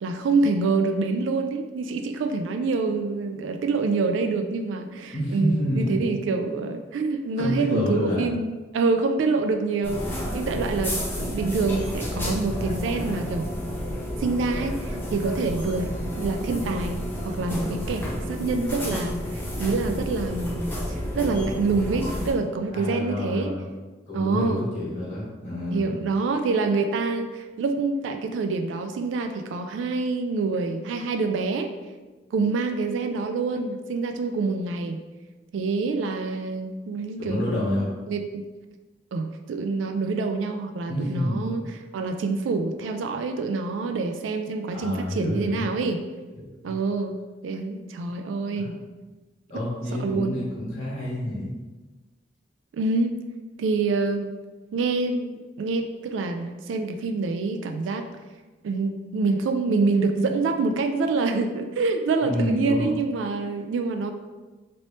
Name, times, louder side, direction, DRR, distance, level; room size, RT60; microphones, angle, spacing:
voice 1, 0.0-13.5 14.2-23.5 24.1-24.6 25.7-31.7 32.3-35.0 35.5-38.4 39.1-41.6 41.9-46.0 46.6-47.2 47.4-48.8 50.0-50.4 52.7-53.2 53.6-54.3 54.7-58.0 58.6-64.1, right 3 dB, 80° right, 6 dB, 0.3 m, -26 dB
voice 2, 5.0-6.1 7.4-8.3 22.7-23.7 24.1-25.9 37.2-37.9 40.9-41.5 44.7-45.7 46.4-46.7 48.5-48.7 49.5-51.5 62.2-62.9, left 1 dB, 40° left, -7 dB, 1.4 m, -28 dB
sound 1, 9.8-22.3, equal, 10° left, 0.7 m, -30 dB
3.0 x 2.9 x 3.1 m, 1.2 s
head